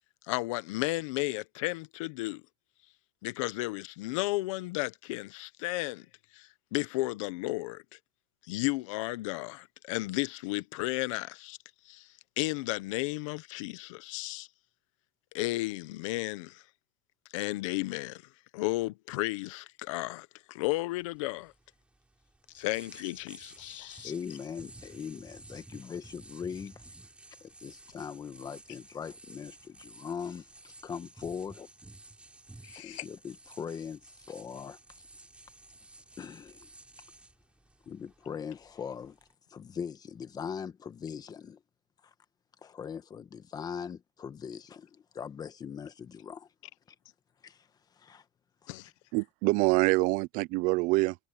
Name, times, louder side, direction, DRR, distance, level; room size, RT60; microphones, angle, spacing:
voice 1, 0.3-2.4 3.2-6.1 6.3-7.8 8.5-11.6 11.9-12.1 12.4-14.5 15.3-16.6 17.3-18.2 18.5-21.5 22.5-24.1 32.6-33.1 48.7-48.9, left 20 dB, 85° left, 1.1 m, -33 dB
sound 1, 20.9-39.3, right 2 dB, 5° right, 3.7 m, -53 dB
voice 2, 24.0-26.8 27.4-30.5 30.8-31.7 32.7-34.8 36.2-36.7 37.9-39.2 39.5-41.6 42.0-42.1 42.6-46.5 47.4-48.2 48.6-48.8, left 7 dB, 25° left, 1.4 m, -41 dB
voice 3, 49.1-51.2, right 22 dB, 60° right, 0.6 m, -25 dB
cardioid pair, 145°, 16 cm